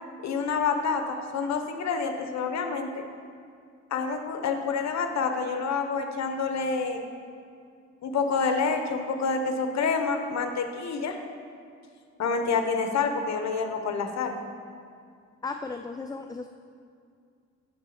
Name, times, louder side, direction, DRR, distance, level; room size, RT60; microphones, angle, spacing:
voice 1, 0.2-2.9 3.9-7.0 8.0-11.1 12.2-14.3, left 5 dB, 65° left, 6 dB, 1.1 m, -28 dB
voice 2, 15.4-16.5, left 4 dB, 15° left, 6 dB, 0.4 m, -35 dB
11.5 x 4.2 x 7.0 m, 2.3 s
cardioid pair, 90°, 30 cm